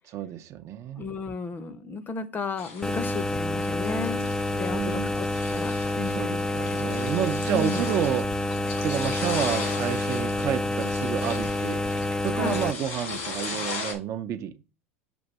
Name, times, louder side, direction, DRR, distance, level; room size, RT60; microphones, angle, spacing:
voice 1, 0.1-1.1 4.7-5.2 6.1-8.5 8.8-11.8 12.2-14.6, right 10 dB, 45° right, 0.6 m, -30 dB
voice 2, 1.0-4.3 4.5-6.5 7.5-7.9 12.3-12.6, left 4 dB, 25° left, 0.7 m, -34 dB
sound 1, 2.6-13.9, left 4 dB, 75° left, 2.2 m, -38 dB
sound 2, 2.8-12.7, left 1 dB, 10° left, 0.4 m, -28 dB
6.9 x 2.6 x 5.3 m
hypercardioid pair, 95°, 7 cm